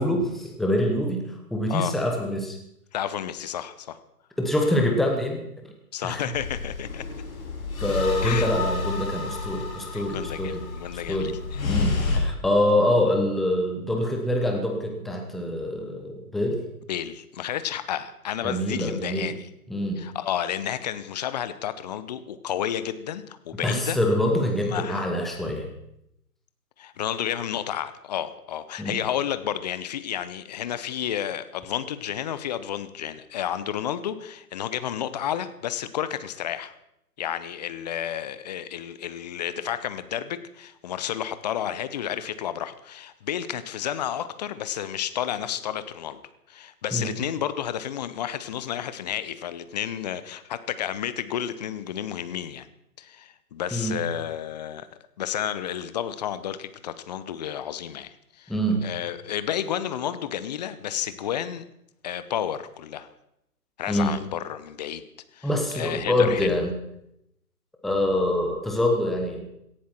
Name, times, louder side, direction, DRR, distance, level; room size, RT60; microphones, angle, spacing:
voice 1, 0.0-2.6 4.4-5.4 6.0-6.3 7.8-10.6 11.1-11.3 11.6-16.6 18.4-19.3 19.7-20.0 23.6-25.7 28.8-29.0 46.9-47.1 53.7-53.9 58.5-58.8 63.9-64.2 65.4-66.8 67.8-69.4, left 1 dB, ahead, 2 dB, 0.8 m, -25 dB
voice 2, 2.9-4.0 5.9-7.0 8.2-8.5 9.9-11.6 12.2-12.3 16.9-19.5 20.0-24.0 24.6-25.1 26.8-36.7 37.2-46.2 46.5-52.7 53.0-54.9 55.2-58.5 58.8-61.6 62.0-63.1 63.8-65.0 65.3-65.5 65.7-66.5, left 10 dB, 25° left, 13 dB, 0.9 m, -31 dB
sound 1, 6.3-12.2, left 3 dB, 60° left, 4.6 m, -29 dB
18.0 x 14.5 x 4.5 m, 0.80 s
figure-of-eight pair, 140°, 47 cm